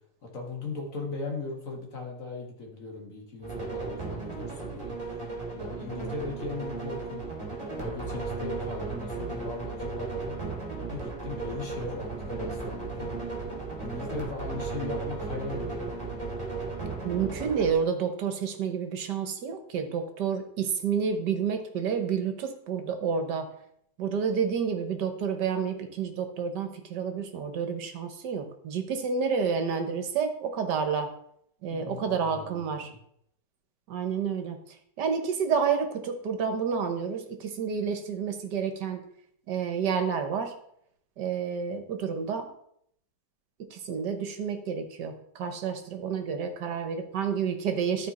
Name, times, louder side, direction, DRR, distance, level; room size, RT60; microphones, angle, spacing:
voice 1, 0.2-5.0 5.5-7.3 7.8-10.4 10.9-13.1 13.8-16.2 31.7-33.0, left 3 dB, 45° left, 0 dB, 2.1 m, -38 dB
sound 1, 3.4-17.7, right 4 dB, 15° right, 2.6 m, -35 dB
voice 2, 17.0-23.5 24.0-31.1 31.6-32.9 33.9-34.6 35.0-39.0 39.5-40.5 41.2-42.5 43.7-48.1, right 6 dB, 70° right, 6 dB, 1.6 m, -29 dB
13.0 x 4.6 x 4.2 m, 0.70 s
omnidirectional pair, 2.0 m